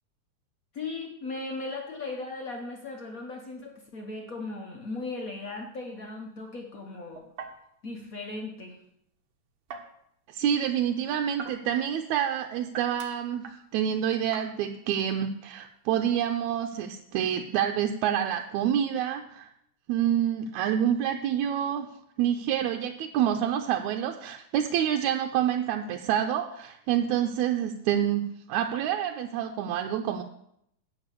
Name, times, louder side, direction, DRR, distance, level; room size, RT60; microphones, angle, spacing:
voice 1, 0.7-7.3 7.8-8.8, left 3 dB, 70° left, 1 dB, 0.8 m, -37 dB
sound 1, 4.8-17.8, right 5 dB, 55° right, 1.6 m, -49 dB
voice 2, 10.3-19.5 19.9-21.9 22.2-30.2, right 10 dB, 80° right, 4 dB, 2.0 m, -27 dB
12.0 x 4.6 x 8.3 m, 0.73 s
omnidirectional pair, 3.4 m